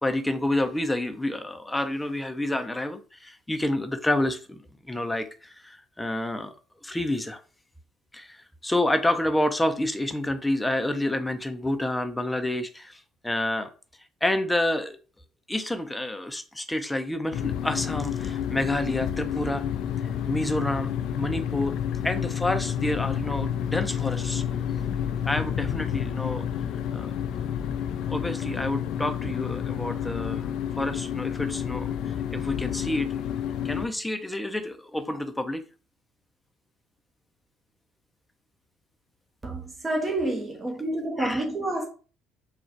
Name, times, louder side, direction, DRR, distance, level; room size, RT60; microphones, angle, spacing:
voice 1, 0.0-4.6 4.9-6.5 6.8-7.4 8.1-13.7 14.2-15.0 15.5-19.6 20.3-20.9 21.2-21.8 22.0-24.4 25.2-26.5 26.9-27.1 28.1-33.1 33.6-35.6 41.2-41.4, left 1 dB, 10° left, 0.7 m, -29 dB
sound 1, 17.3-33.9, left 9 dB, 70° left, 0.4 m, -30 dB
voice 2, 39.4-41.8, right 1 dB, 25° right, 1.0 m, -28 dB
3.8 x 2.4 x 4.5 m
hypercardioid pair, 65°, 0 cm